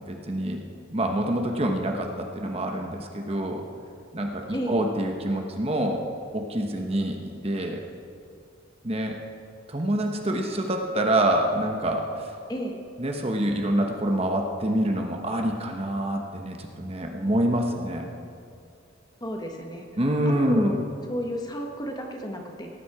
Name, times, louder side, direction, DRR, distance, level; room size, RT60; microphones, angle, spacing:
voice 1, 0.1-0.6 0.9-3.6 4.1-6.1 6.3-7.2 7.4-7.8 8.8-9.2 9.7-12.3 13.0-18.1 20.0-20.8, right 1 dB, 30° right, 3 dB, 1.0 m, -26 dB
voice 2, 19.2-19.9 20.4-20.8 21.1-22.7, equal, 20° left, 2 dB, 1.1 m, -32 dB
18.0 x 9.4 x 4.8 m, 2.4 s
head